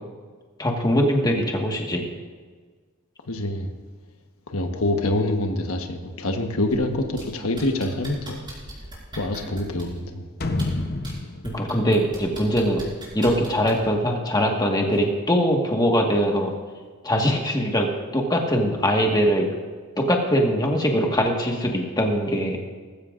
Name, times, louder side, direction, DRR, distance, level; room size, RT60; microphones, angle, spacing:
voice 1, 0.6-2.1 11.4-12.9 13.1-16.5 17.0-19.5 20.0-22.6, equal, 20° left, 1 dB, 1.6 m, -22 dB
voice 2, 3.3-3.7 4.5-8.4 9.2-10.3, left 1 dB, 80° left, 4 dB, 1.3 m, -26 dB
sound 1, 6.7-7.2 7.6-10.0 10.5-11.1 11.4-13.9 14.9-15.0, right 2 dB, 20° right, 4.6 m, -39 dB
sound 2, 10.4-13.2 13.5-13.6, left 2 dB, 45° left, 0.8 m, -30 dB
19.0 x 15.0 x 2.6 m, 1.5 s
head